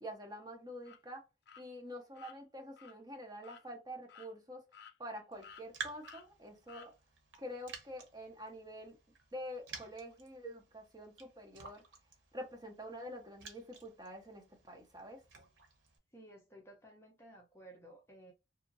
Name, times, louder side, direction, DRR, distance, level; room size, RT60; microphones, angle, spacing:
voice 1, 0.0-1.2 1.6-4.6 5.0-6.9 7.4-9.0 9.3-11.8 12.3-15.2, equal, 20° right, 0.9 m, -47 dB
sound 1, 0.8-1.0 1.5-1.6 2.1-2.4 2.8-2.9 3.4-3.6 4.1-4.3 4.7-5.2 5.4-5.7 6.0-6.3 6.7-6.9, left 7 dB, 60° left, 0.5 m, -55 dB
Raindrop, 5.3-16.0, right 5 dB, 80° right, 0.9 m, -52 dB
voice 2, 16.1-18.3, right 1 dB, 15° left, 0.6 m, -56 dB
2.8 x 2.5 x 2.5 m
head